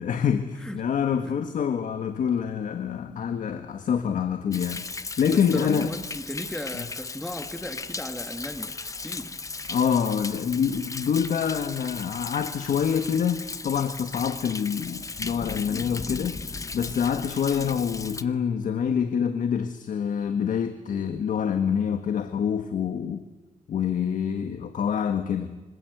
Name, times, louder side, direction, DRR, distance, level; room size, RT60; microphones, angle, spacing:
voice 1, 0.0-4.8 5.2-5.9 6.7-6.8 9.7-16.4 16.7-23.2 23.7-25.6, left 7 dB, 70° left, 8 dB, 1.7 m, -26 dB
Thunder, 4.5-18.2, left 4 dB, 25° left, 0.9 m, -36 dB
voice 2, 5.3-8.8 9.0-9.4 15.7-16.0, left 1 dB, 5° left, 6 dB, 1.6 m, -35 dB
25.5 x 25.5 x 8.1 m, 1.1 s
wide cardioid pair, 160°, 14 cm